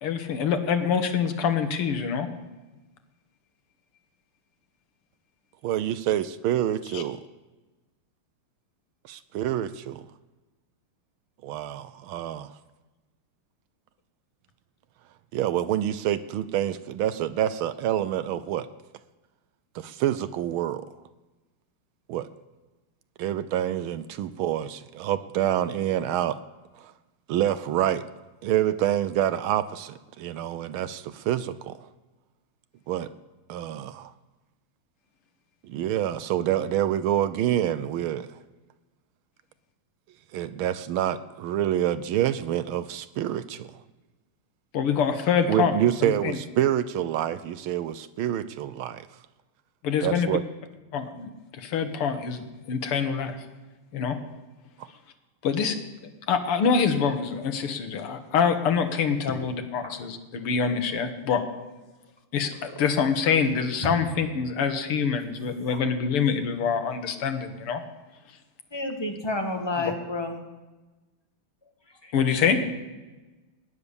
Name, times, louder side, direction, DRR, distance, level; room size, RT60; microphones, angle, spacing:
voice 1, 0.0-2.3 6.9-7.0 44.7-45.7 46.0-46.3 49.8-50.4 50.9-53.4 53.9-54.2 55.4-55.8 56.3-61.4 62.3-67.8 69.8-69.9 72.1-72.6, left 6 dB, 80° left, 8 dB, 2.2 m, -25 dB
voice 2, 5.6-7.2 9.1-10.0 11.4-12.5 15.3-18.7 19.7-20.9 22.1-22.3 23.2-26.4 26.8-26.9 27.3-28.0 28.4-31.8 32.9-33.1 33.5-34.1 35.6-38.3 40.3-43.7 45.5-49.1 50.0-50.4, right 11 dB, 75° right, 14 dB, 1.4 m, -27 dB
voice 3, 68.7-70.4 72.0-72.1, left 2 dB, 15° left, 3 dB, 1.6 m, -30 dB
18.0 x 10.0 x 7.0 m, 1.2 s
omnidirectional pair, 2.4 m